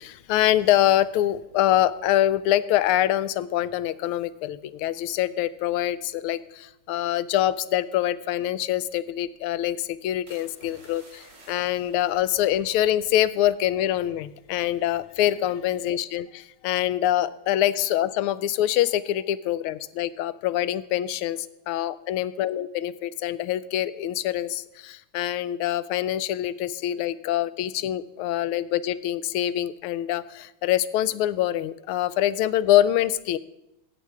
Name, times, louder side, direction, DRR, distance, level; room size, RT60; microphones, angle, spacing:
voice 1, 0.0-33.4, left 12 dB, 90° left, 16 dB, 1.5 m, -25 dB
sound 1, 10.3-14.0 14.3-14.6 15.1-15.4, right 2 dB, 45° right, 3.3 m, -54 dB
15.5 x 8.1 x 4.7 m, 0.88 s
omnidirectional pair, 2.3 m